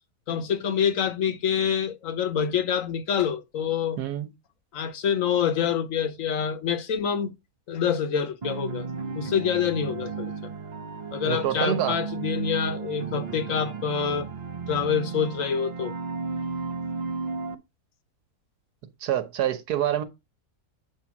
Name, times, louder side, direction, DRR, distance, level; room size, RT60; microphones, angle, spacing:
voice 1, 0.3-4.0 4.7-7.3 7.7-8.9 9.1-10.3 11.1-14.3 14.7-15.9, left 7 dB, 60° left, 1.1 m, -26 dB
voice 2, 4.0-4.3 11.2-12.0 19.0-20.0, right 11 dB, 85° right, 1.4 m, -26 dB
sound 1, 8.4-17.6, right 5 dB, 50° right, 0.5 m, -34 dB
7.8 x 2.8 x 5.9 m
omnidirectional pair, 1.6 m